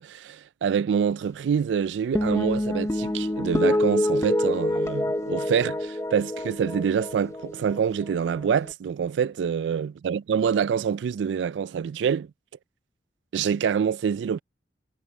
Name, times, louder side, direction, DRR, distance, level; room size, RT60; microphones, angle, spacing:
voice 1, 0.0-12.3 13.3-14.4, right 7 dB, 85° right, 0.3 m, -26 dB
sound 1, 2.2-8.7, left 1 dB, 15° left, 0.7 m, -27 dB
head